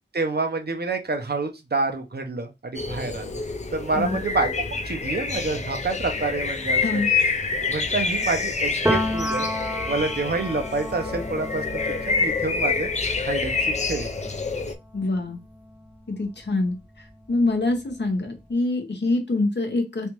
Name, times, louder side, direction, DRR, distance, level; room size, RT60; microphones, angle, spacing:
voice 1, 0.1-3.4 3.7-7.0 7.6-9.5 9.9-12.9 13.2-13.6 13.9-14.3, right 3 dB, 55° right, 5 dB, 0.7 m, -28 dB
sound 1, 2.7-14.7, left 4 dB, 40° left, 0.5 m, -27 dB
voice 2, 6.8-7.1 14.9-15.4 16.1-20.1, left 2 dB, 65° left, 4 dB, 0.9 m, -25 dB
Piano, 8.9-16.5 16.8-18.4, equal, 10° right, 0.8 m, -32 dB
3.3 x 2.5 x 2.9 m, 0.23 s
wide cardioid pair, 50°, 19 cm